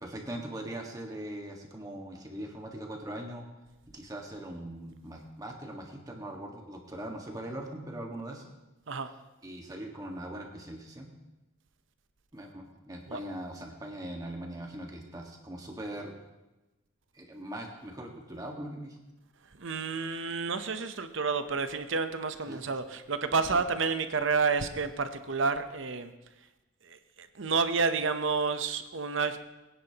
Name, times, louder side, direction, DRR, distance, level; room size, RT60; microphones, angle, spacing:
voice 1, 0.0-3.5 3.9-8.5 9.4-11.1 12.3-16.2 17.1-19.0 22.5-22.6 23.5-23.6, right 1 dB, 15° right, 1 dB, 1.6 m, -41 dB
voice 2, 19.6-26.1 26.9-29.4, right 4 dB, 65° right, 9 dB, 0.8 m, -30 dB
21.5 x 10.0 x 3.0 m, 1.1 s
head